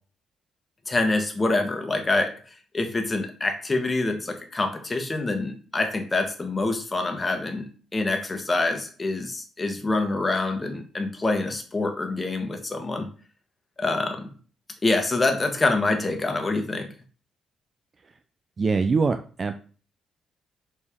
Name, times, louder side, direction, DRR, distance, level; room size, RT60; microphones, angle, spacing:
voice 1, 0.9-2.4 2.7-13.1 13.8-14.3 14.8-16.9, left 2 dB, 25° left, 5 dB, 1.4 m, -26 dB
voice 2, 18.6-19.5, right 4 dB, 35° right, 8 dB, 0.5 m, -23 dB
6.5 x 4.4 x 3.6 m, 0.39 s
cardioid pair, 90°, 0 cm